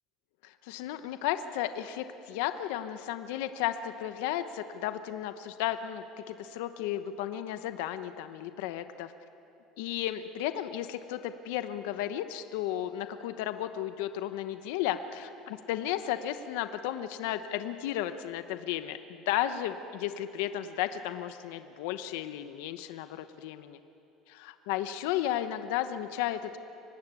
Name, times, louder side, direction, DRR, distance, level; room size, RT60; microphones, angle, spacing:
voice 1, 0.4-9.1 9.8-23.8 24.3-26.6, left 12 dB, 80° left, 10 dB, 1.0 m, -34 dB
25.0 x 19.5 x 8.3 m, 2.9 s
cardioid pair, 180°, 0 cm